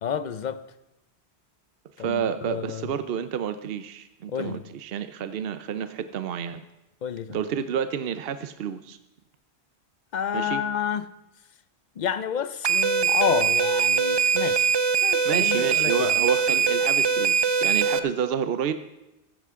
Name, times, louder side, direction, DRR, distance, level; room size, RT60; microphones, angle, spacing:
voice 1, 0.0-0.6 2.0-2.9 4.3-4.6 7.0-7.4 10.1-11.1 12.0-14.7 15.0-16.1, left 8 dB, 50° left, 0.6 m, -29 dB
voice 2, 2.0-6.6 7.3-9.0 10.3-10.6 15.2-18.7, right 8 dB, 65° right, 0.8 m, -29 dB
sound 1, 12.6-18.0, right 6 dB, 45° right, 0.3 m, -22 dB
15.0 x 13.5 x 3.7 m
omnidirectional pair, 1.1 m